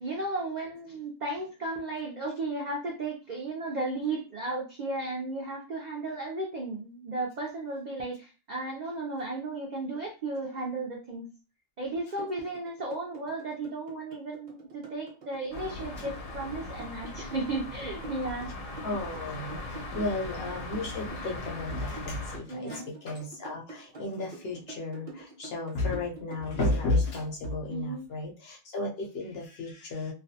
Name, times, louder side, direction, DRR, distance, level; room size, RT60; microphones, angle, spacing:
voice 1, 0.0-11.3 11.8-18.5 19.9-20.1 22.5-22.9 27.7-28.1, right 2 dB, 65° right, -1 dB, 0.4 m, -34 dB
sound 1, 12.2-27.6, right 2 dB, 40° right, 0.8 m, -46 dB
sound 2, 15.5-22.4, left 2 dB, 80° left, 1.1 m, -39 dB
voice 2, 18.8-30.1, left 2 dB, 60° left, 0 dB, 0.7 m, -33 dB
2.4 x 2.1 x 2.7 m, 0.33 s
omnidirectional pair, 1.3 m